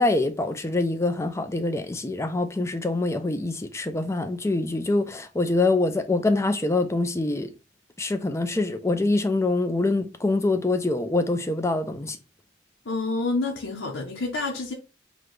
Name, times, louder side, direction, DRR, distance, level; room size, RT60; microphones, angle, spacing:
voice 1, 0.0-7.5 8.0-12.2, left 2 dB, 15° left, 0.5 m, -25 dB
voice 2, 12.8-14.7, left 3 dB, 90° left, 0.8 m, -28 dB
4.9 x 2.3 x 3.8 m
head